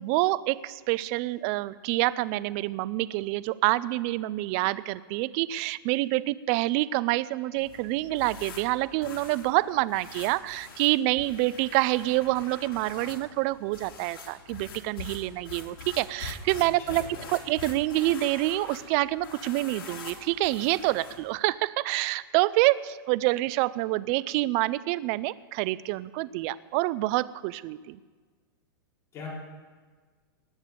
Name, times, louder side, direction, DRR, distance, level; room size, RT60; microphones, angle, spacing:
voice 1, 0.0-28.0, right 18 dB, 35° right, 19 dB, 0.4 m, -27 dB
sound 1, 7.6-21.3, left 5 dB, 75° left, 3.6 m, -45 dB
voice 2, 16.9-17.3 29.1-29.3, left 4 dB, 25° left, -5 dB, 5.4 m, -41 dB
19.0 x 8.1 x 6.9 m, 1.5 s
supercardioid pair, 155°, 12 cm